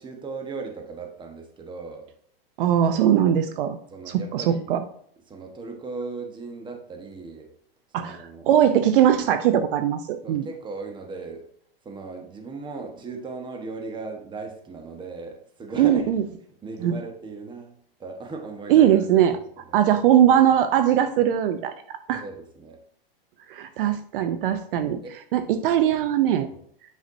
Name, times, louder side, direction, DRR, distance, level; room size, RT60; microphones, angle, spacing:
voice 1, 0.0-2.1 3.9-4.8 5.3-7.5 7.9-8.5 10.2-11.4 11.8-16.1 16.5-17.7 18.0-19.0 19.7-19.8 22.2-22.8 25.0-25.2 26.5-26.6, right 4 dB, 15° right, 4 dB, 1.2 m, -37 dB
voice 2, 2.6-3.8 4.1-4.8 7.9-8.2 8.5-10.5 15.8-16.2 16.8-17.0 18.7-19.4 19.7-22.2 23.5-25.0 25.3-26.5, right 10 dB, 60° right, 10 dB, 0.7 m, -20 dB
8.2 x 5.7 x 2.7 m, 0.63 s
hypercardioid pair, 130°, 30 cm